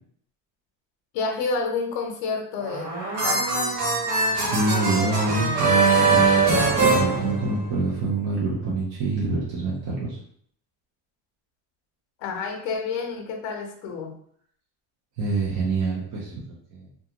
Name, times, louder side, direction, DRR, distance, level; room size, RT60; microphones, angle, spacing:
voice 1, 1.1-2.9 3.2-3.8 12.2-14.2, left 4 dB, 60° left, 2 dB, 0.7 m, -29 dB
sound 1, 2.6-7.9, right 4 dB, 60° right, 1.2 m, -22 dB
voice 2, 4.3-6.2 6.9-10.2 15.2-16.4 16.7-16.9, right 3 dB, 35° right, -5 dB, 0.5 m, -26 dB
2.4 x 2.3 x 2.8 m, 0.62 s
cardioid pair, 160°, 50 cm